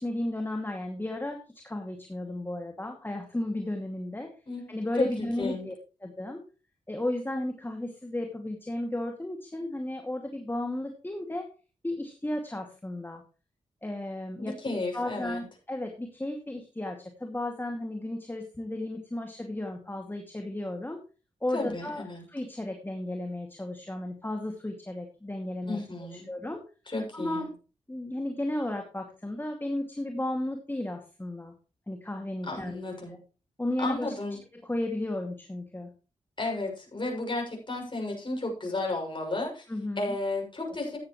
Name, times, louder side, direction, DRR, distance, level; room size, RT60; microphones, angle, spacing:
voice 1, 0.0-1.4 1.6-4.3 4.7-5.7 6.0-6.4 6.9-11.5 11.8-13.2 13.8-14.5 14.9-21.0 21.4-25.8 26.3-26.6 27.1-27.5 27.9-31.5 31.9-33.2 33.6-34.1 34.5-35.9 39.7-40.2, left 1 dB, 15° left, 3 dB, 2.3 m, -34 dB
voice 2, 4.5-5.7 14.4-15.4 21.5-22.2 25.7-26.3 26.9-27.5 32.5-33.2 33.8-34.4 36.4-39.6 40.0-41.0, left 2 dB, 40° left, 0 dB, 6.7 m, -33 dB
14.5 x 9.6 x 3.2 m, 0.33 s
cardioid pair, 55°, 13 cm